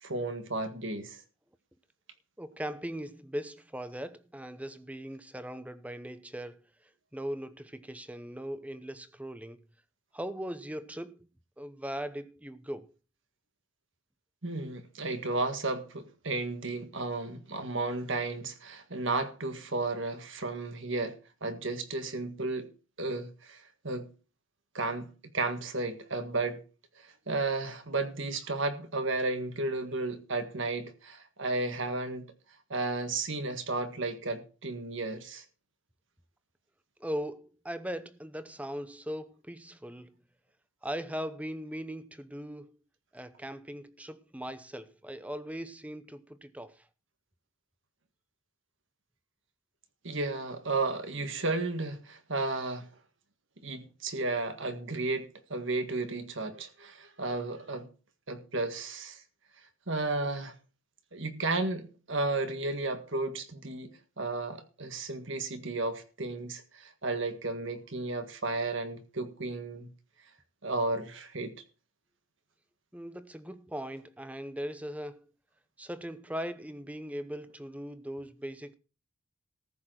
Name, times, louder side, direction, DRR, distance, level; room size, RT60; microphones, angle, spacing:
voice 1, 0.0-1.2 14.4-22.7 23.0-24.1 24.7-26.6 27.0-32.3 32.7-35.4 50.0-52.9 53.6-57.9 58.3-59.2 59.9-60.5 61.1-69.9 70.6-71.5, right 2 dB, 55° right, 1.7 m, -33 dB
voice 2, 2.4-6.7 7.1-9.6 10.1-11.2 11.6-12.9 37.0-40.2 40.8-42.7 43.1-46.8 72.9-75.3 75.8-78.7, equal, 5° right, 0.7 m, -39 dB
14.5 x 6.7 x 6.3 m
head